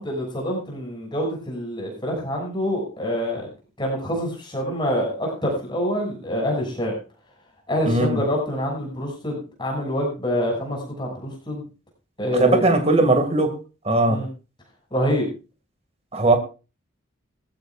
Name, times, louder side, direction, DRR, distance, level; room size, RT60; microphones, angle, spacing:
voice 1, 0.0-3.5 3.8-6.9 7.7-11.6 12.2-12.6 14.1-14.3 14.9-15.3, equal, 20° left, 0 dB, 6.4 m, -26 dB
voice 2, 7.9-8.2 12.3-13.6 13.8-14.2 16.1-16.4, right 2 dB, 30° right, 6 dB, 2.2 m, -19 dB
19.0 x 14.5 x 2.5 m, 0.32 s
head